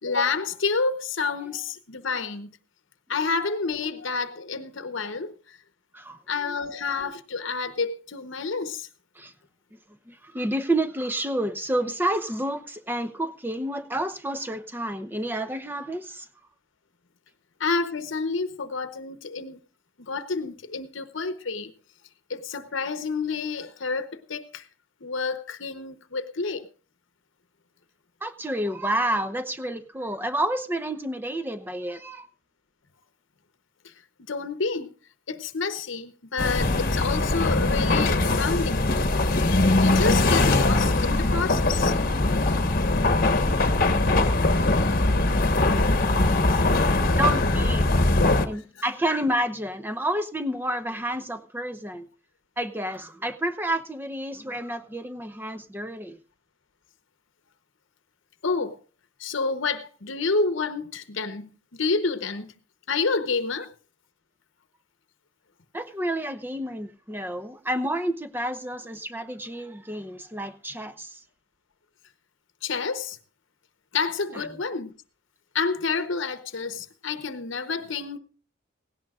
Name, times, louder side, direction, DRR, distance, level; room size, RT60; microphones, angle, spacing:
voice 1, 0.0-2.6 3.1-5.6 6.3-8.9 17.6-19.6 20.0-21.7 22.3-24.7 25.0-26.7 34.3-34.9 35.3-38.9 39.3-39.4 39.8-41.9 46.0-47.1 48.2-48.8 58.4-58.8 59.2-62.5 62.9-63.7 72.6-73.2 73.9-74.9 75.5-78.2, left 4 dB, 65° left, 1.0 m, -29 dB
voice 2, 10.1-16.3 28.2-32.3 46.5-46.7 47.2-47.9 48.5-52.1 52.6-56.2 65.7-71.2 74.3-74.4, right 1 dB, 10° right, 0.8 m, -29 dB
sound 1, 36.4-48.5, left 2 dB, 45° left, 1.2 m, -21 dB
17.5 x 17.5 x 2.4 m
head